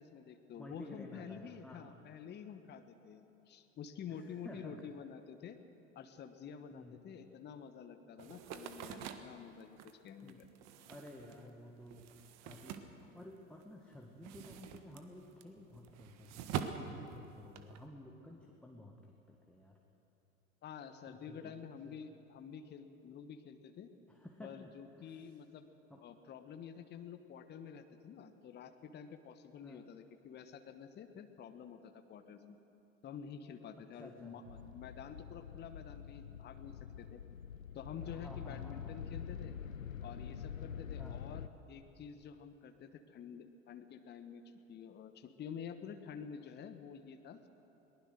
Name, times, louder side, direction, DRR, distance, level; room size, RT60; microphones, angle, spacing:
voice 1, 0.0-5.6 5.9-10.5 20.6-23.9 24.4-25.7 26.0-32.6 33.0-37.2 37.7-39.5 40.0-44.4 44.7-47.4, left 7 dB, 25° left, 8 dB, 1.2 m, -49 dB
voice 2, 0.6-1.9 4.1-4.8 6.7-7.0 10.2-10.5 10.9-12.1 12.4-19.8 21.1-21.5 21.8-21.9 24.1-24.7 25.0-25.3 25.9-26.0 29.6-29.8 34.0-34.4 37.9-39.0 41.0-41.2, left 1 dB, 5° left, 0 dB, 1.8 m, -53 dB
sound 1, 8.2-13.6 13.9-17.8, right 8 dB, 40° right, 1.5 m, -45 dB
sound 2, 34.4-41.5, left 8 dB, 80° left, 0.7 m, -46 dB
22.0 x 19.5 x 6.5 m, 2.9 s
figure-of-eight pair, 80°, 39 cm